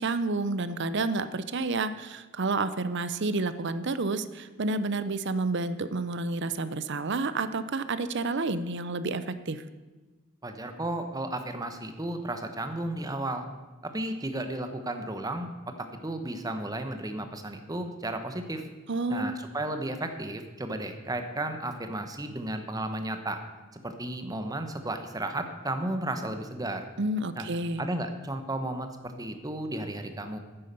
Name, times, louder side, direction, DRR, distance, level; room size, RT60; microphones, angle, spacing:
voice 1, 0.0-9.6 18.9-19.4 27.0-27.8, right 3 dB, 55° right, 13 dB, 0.7 m, -30 dB
voice 2, 10.4-13.5 13.8-15.5 15.8-18.6 19.1-23.4 23.7-26.9 27.4-27.5 27.8-28.9 29.2-30.4, right 1 dB, 15° right, 7 dB, 1.0 m, -33 dB
9.8 x 9.4 x 6.8 m, 1.2 s
head